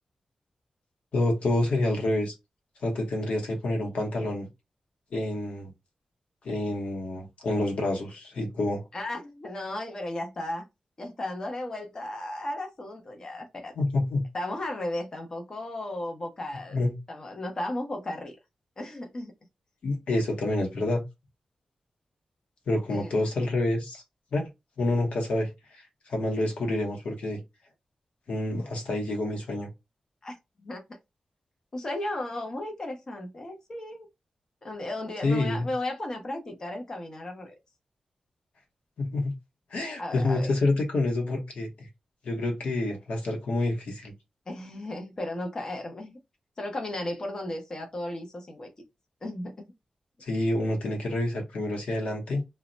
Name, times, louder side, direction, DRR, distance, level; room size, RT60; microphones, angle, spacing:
voice 1, 1.1-2.3 2.8-4.5 5.1-5.7 6.4-8.8 13.8-14.2 16.7-16.9 19.8-21.0 22.7-24.0 24.3-24.5 24.8-27.4 28.3-29.7 35.2-35.7 39.0-39.3 39.7-41.9 42.2-44.1 50.2-52.5, left 2 dB, 90° left, 0.8 m, -28 dB
voice 2, 8.9-10.7 11.0-13.7 14.3-16.8 17.1-18.4 18.8-19.3 22.9-23.1 30.2-30.8 31.7-34.1 34.6-37.5 40.0-40.5 44.5-46.2 46.6-48.7 49.2-49.7, left 1 dB, 30° left, 0.6 m, -35 dB
2.1 x 2.0 x 3.7 m
wide cardioid pair, 175°, 2 cm